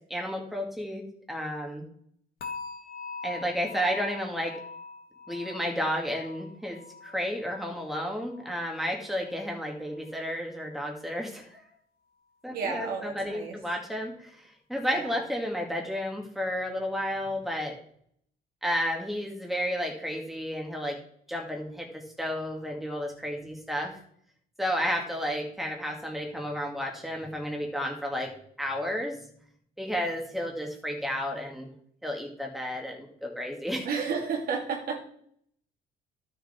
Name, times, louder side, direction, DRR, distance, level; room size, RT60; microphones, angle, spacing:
voice 1, 0.1-1.9 3.2-4.6 5.3-11.6 12.4-17.8 18.6-21.0 21.3-24.0 24.6-28.3 28.6-29.2 29.8-31.7 32.0-33.9, equal, ahead, 1 dB, 2.1 m, -32 dB
sound 1, 2.4-9.5 9.8-10.2 10.7-10.8, left 4 dB, 65° left, 1.7 m, -44 dB
voice 2, 12.5-13.5 14.9-15.1 33.9-35.0, right 5 dB, 60° right, 2 dB, 2.5 m, -31 dB
12.0 x 6.7 x 4.4 m, 0.65 s
cardioid pair, 110°, 17 cm